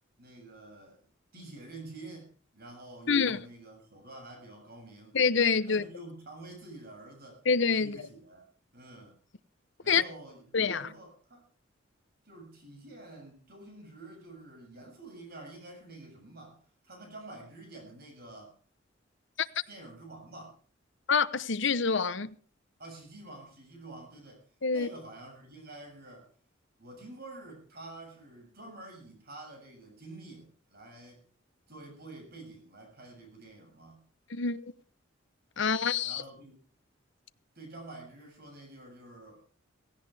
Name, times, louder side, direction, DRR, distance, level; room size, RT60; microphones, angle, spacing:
voice 1, 0.2-1.0 1.3-5.2 5.7-7.4 7.8-8.5 8.7-9.2 9.8-11.4 12.2-18.6 19.7-20.6 22.8-26.3 26.8-31.2 31.7-34.0 36.0-36.6 37.6-39.5, right 2 dB, 55° right, 7.1 m, -48 dB
voice 2, 3.1-3.4 5.1-5.8 7.5-8.0 9.9-10.0 10.5-10.9 21.1-22.3 24.6-24.9 34.3-34.6 35.6-36.2, left 5 dB, 65° left, 0.9 m, -26 dB
17.5 x 17.0 x 3.5 m
head